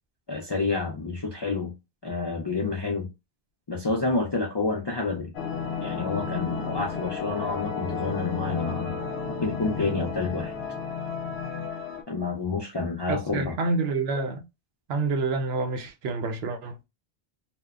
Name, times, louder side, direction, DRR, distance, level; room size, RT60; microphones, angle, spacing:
voice 1, 0.3-1.7 2.0-3.1 3.7-5.3 5.8-9.0 9.4-10.5 12.1-13.6, left 3 dB, 45° left, 0.3 m, -29 dB
sound 1, 5.3-12.0, left 5 dB, 85° left, 0.9 m, -32 dB
voice 2, 13.1-14.4 14.9-16.8, right 3 dB, 80° right, 0.8 m, -28 dB
2.8 x 2.1 x 2.3 m
omnidirectional pair, 1.1 m